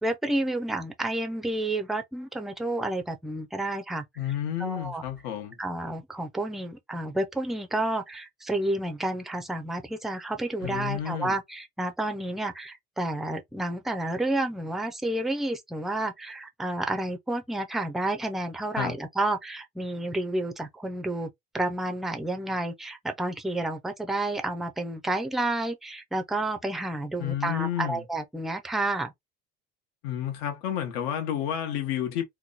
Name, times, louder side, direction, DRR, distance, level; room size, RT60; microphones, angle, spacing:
voice 1, 0.0-4.0 4.6-5.0 5.6-21.3 21.5-29.1, right 1 dB, ahead, 0.4 m, -30 dB
voice 2, 4.2-5.6 10.6-11.4 18.7-18.9 27.2-28.0 30.0-32.2, left 10 dB, 90° left, 1.0 m, -30 dB
2.9 x 2.2 x 3.8 m
cardioid pair, 170°, 20 cm